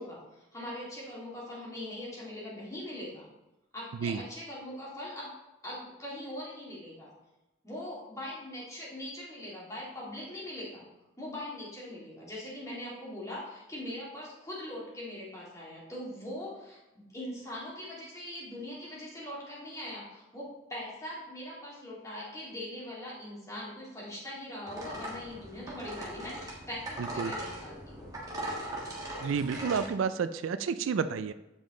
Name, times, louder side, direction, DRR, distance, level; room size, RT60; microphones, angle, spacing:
voice 1, 0.0-3.3 3.7-5.3 5.6-7.1 7.6-10.9 11.2-16.8 17.1-28.1, left 1 dB, 15° left, -6 dB, 2.2 m, -41 dB
sound 1, 24.7-29.9, right 1 dB, 20° right, 1.5 m, -39 dB
voice 2, 27.0-27.3 29.2-31.3, right 6 dB, 85° right, 12 dB, 0.4 m, -30 dB
7.3 x 5.2 x 3.8 m, 0.98 s
head